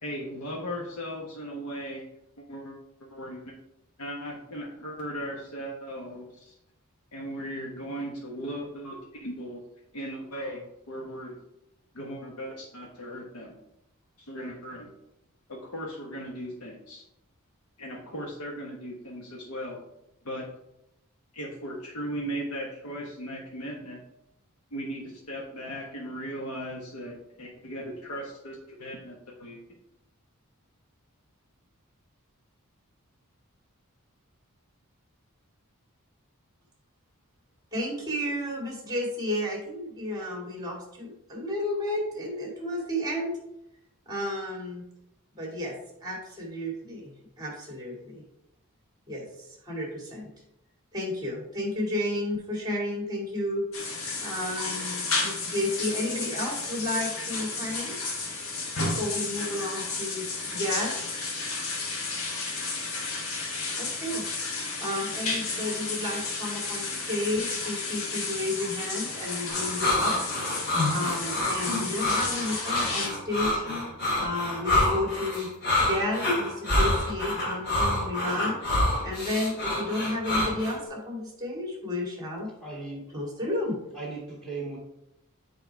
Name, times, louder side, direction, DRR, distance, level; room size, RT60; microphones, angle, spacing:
voice 1, 0.0-2.1 2.4-3.6 4.0-6.5 7.1-9.6 9.9-11.4 11.9-13.6 14.2-14.9 15.5-17.0 17.8-19.8 20.2-20.5 21.3-24.0 24.7-29.6, equal, 90° left, -2 dB, 1.1 m, -37 dB
voice 2, 37.7-43.4 44.1-44.8 45.4-48.2 49.1-50.3 50.9-53.7 54.2-58.0 58.8-60.2 60.5-61.0 63.8-70.2 70.9-73.6 74.2-75.5 75.8-78.6 79.0-82.5 83.1-83.8, left 1 dB, 20° right, -1 dB, 2.3 m, -32 dB
sound 1, 53.7-73.1, left 3 dB, 65° left, 1.4 m, -32 dB
sound 2, 69.5-80.8, left 1 dB, 50° left, 2.8 m, -27 dB
voice 3, 82.6-83.6 83.9-84.8, right 3 dB, ahead, -6 dB, 2.5 m, -38 dB
7.2 x 4.8 x 4.6 m, 0.85 s
head